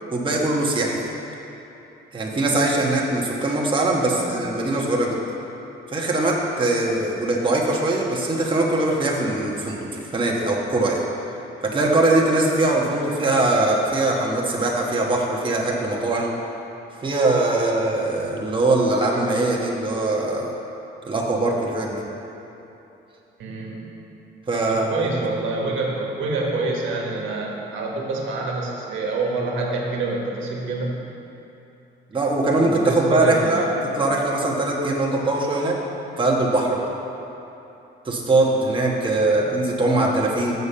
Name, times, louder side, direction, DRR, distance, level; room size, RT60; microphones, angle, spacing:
voice 1, 0.1-1.1 2.1-5.2 5.9-9.9 10.1-11.0 11.7-16.3 17.0-20.5 21.1-22.0 24.5-24.8 32.1-33.7 33.9-35.7 36.2-36.8 38.0-40.5, right 2 dB, 25° right, -3 dB, 1.2 m, -21 dB
voice 2, 4.0-4.4 23.4-23.9 24.7-31.0 32.6-33.8 39.3-39.5, right 3 dB, 75° right, -2 dB, 1.4 m, -27 dB
6.8 x 6.7 x 5.6 m, 2.9 s
cardioid pair, 90°, 20 cm